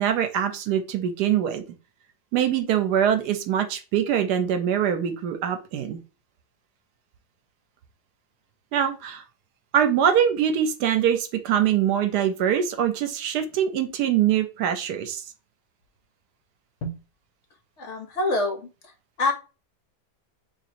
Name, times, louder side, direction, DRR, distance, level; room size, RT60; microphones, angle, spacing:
voice 1, 0.0-1.6 2.3-6.0 8.7-9.2 9.7-15.2, right 9 dB, 80° right, 8 dB, 1.2 m, -23 dB
voice 2, 17.8-18.7 19.2-19.3, left 2 dB, 50° left, 3 dB, 1.1 m, -25 dB
2.9 x 2.9 x 4.2 m, 0.32 s
omnidirectional pair, 1.8 m